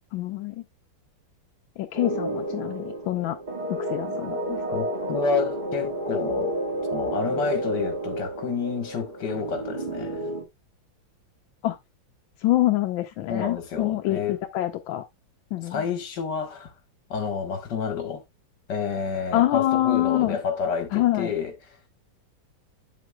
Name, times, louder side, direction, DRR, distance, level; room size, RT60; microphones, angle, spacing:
voice 1, 0.1-0.6 1.8-3.4 3.7-4.6 11.6-11.8 12.4-15.0 15.5-15.8 19.3-20.4 20.9-21.3, left 14 dB, 85° left, 1.4 m, -25 dB
sound 1, 1.9-10.4, right 1 dB, 25° right, 1.9 m, -30 dB
voice 2, 4.7-6.6 6.9-10.2 13.3-14.4 15.6-16.7 17.1-18.2 18.7-21.8, left 6 dB, 65° left, 2.1 m, -29 dB
9.2 x 7.6 x 2.3 m
omnidirectional pair, 2.1 m